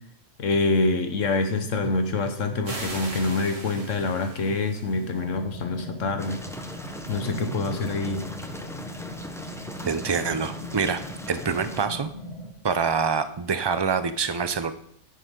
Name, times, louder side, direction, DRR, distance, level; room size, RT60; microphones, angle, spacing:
voice 1, 0.4-6.5 7.1-8.3, left 3 dB, 85° left, 7 dB, 1.5 m, -26 dB
sound 1, 2.6-5.2, right 2 dB, 80° right, 2.4 m, -39 dB
sound 2, 5.1-12.5, left 1 dB, 55° left, 2.2 m, -40 dB
sound 3, 6.2-11.9, equal, 5° left, 0.6 m, -39 dB
voice 2, 9.9-11.0 11.3-12.1 12.6-14.7, right 5 dB, 40° right, 11 dB, 0.3 m, -25 dB
9.6 x 9.3 x 3.8 m, 0.69 s
omnidirectional pair, 1.3 m